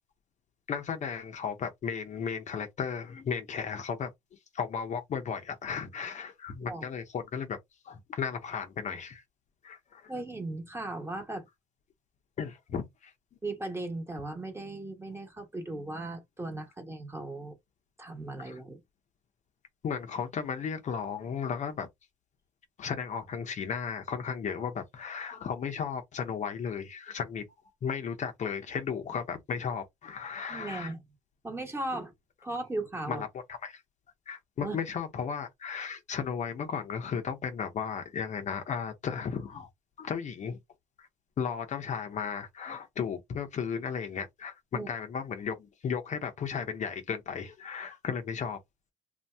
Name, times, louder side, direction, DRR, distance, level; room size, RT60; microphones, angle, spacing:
voice 1, 0.7-4.1 4.5-7.6 7.8-9.2 9.6-10.1 12.4-13.1 18.4-18.6 19.8-21.9 22.8-27.4 27.8-30.9 33.1-33.8 34.3-39.7 40.0-40.6 41.0-41.1 41.4-48.6, left 6 dB, 45° left, 0.7 m, -35 dB
voice 2, 10.1-11.5 13.4-17.6 18.0-18.8 30.5-31.0 31.4-32.1 32.4-33.2 34.6-34.8 44.7-44.9, right 2 dB, 15° right, 1.2 m, -37 dB
2.7 x 2.2 x 3.4 m
cardioid pair, 110°, 17 cm